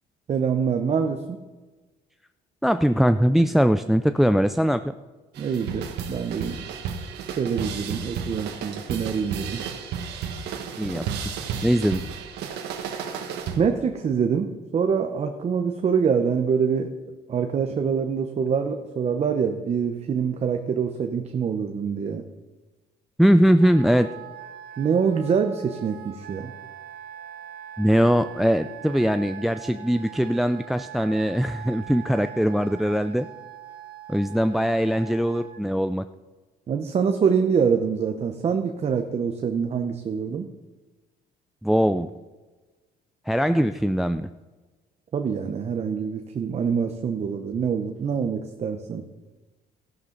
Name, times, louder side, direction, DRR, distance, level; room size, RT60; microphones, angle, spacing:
voice 1, 0.3-1.4 5.4-6.6 7.2-9.6 13.6-16.9 17.3-22.2 24.8-26.5 36.7-40.5 45.1-49.0, right 6 dB, 40° right, 6 dB, 0.9 m, -25 dB
voice 2, 2.6-4.9 10.8-11.1 11.6-12.0 23.2-24.2 27.8-33.3 34.1-36.0 41.6-42.1 43.3-44.3, equal, ahead, 11 dB, 0.3 m, -21 dB
sound 1, 5.3-13.7, right 6 dB, 85° right, 1.6 m, -33 dB
Wind instrument woodwind instrument, 23.6-35.6, right 9 dB, 65° right, 1.0 m, -42 dB
15.0 x 11.0 x 4.0 m, 1.3 s
cardioid pair, 110°, 17 cm